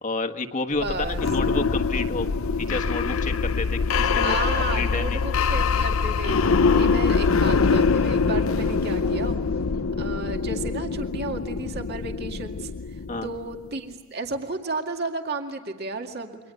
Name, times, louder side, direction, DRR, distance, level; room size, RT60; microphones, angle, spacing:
voice 1, 0.0-2.3 2.6-5.2 6.7-6.9 13.1-13.3, left 3 dB, 35° left, 4 dB, 1.4 m, -30 dB
sound 1, 0.8-13.6, left 4 dB, 75° left, 0.7 m, -24 dB
voice 2, 0.8-1.2 4.2-9.4 10.0-12.7 13.2-16.4, right 3 dB, 50° right, 3 dB, 2.2 m, -33 dB
29.0 x 24.5 x 7.9 m, 1.4 s
head